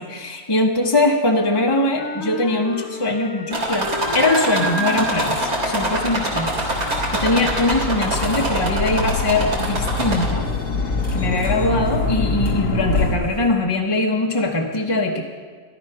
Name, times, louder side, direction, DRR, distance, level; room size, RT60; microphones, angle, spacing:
voice 1, 0.0-6.5 6.8-10.5 11.1-15.2, left 2 dB, 20° left, 0 dB, 0.9 m, -21 dB
Wind instrument woodwind instrument, 1.2-6.3, left 4 dB, 70° left, 1.2 m, -33 dB
sound 1, 3.5-10.5 11.0-11.7 12.5-12.6 13.0-13.1, right 1 dB, 85° right, 3.2 m, -25 dB
sound 2, 5.1-13.1, left 3 dB, 90° left, 1.6 m, -25 dB
14.0 x 13.5 x 5.6 m, 1.5 s
omnidirectional pair, 1.5 m